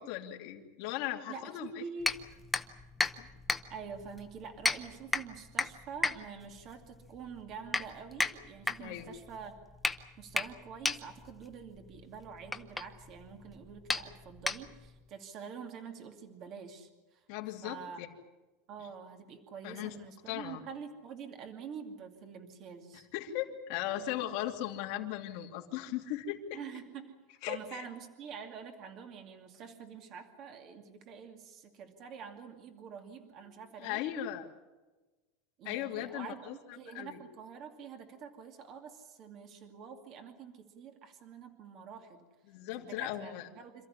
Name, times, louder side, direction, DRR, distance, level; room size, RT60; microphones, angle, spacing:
voice 1, 0.0-1.7 8.8-9.1 17.3-18.1 19.6-19.9 20.3-20.6 23.1-26.6 27.4-27.9 33.8-34.5 35.6-37.2 42.5-43.5, left 13 dB, 50° left, 1 dB, 2.8 m, -38 dB
voice 2, 1.3-2.2 3.7-9.5 10.2-17.2 17.6-18.0 18.7-23.1 26.5-34.0 35.6-42.3 42.8-43.9, right 6 dB, 35° right, 5 dB, 2.5 m, -46 dB
sound 1, 2.0-15.0, left 3 dB, 5° left, 0.8 m, -36 dB
27.0 x 14.0 x 10.0 m, 1.2 s
supercardioid pair, 175°, 0 cm